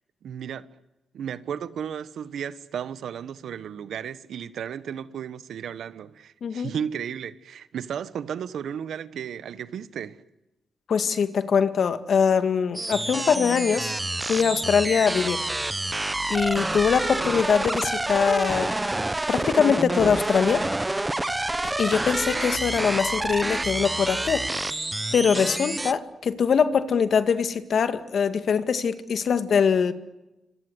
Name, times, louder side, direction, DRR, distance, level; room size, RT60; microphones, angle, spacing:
voice 1, 0.2-0.7 1.1-10.2 16.2-16.3, right 8 dB, 80° right, 1.3 m, -34 dB
voice 2, 6.4-6.7 10.9-13.9 14.3-15.4 16.3-18.7 19.3-20.6 21.6-24.4 25.1-29.9, left 6 dB, 65° left, 2.0 m, -22 dB
sound 1, 12.7-25.9, right 2 dB, 15° right, 1.1 m, -28 dB
27.5 x 25.5 x 8.1 m
cardioid pair, 75°, 0 cm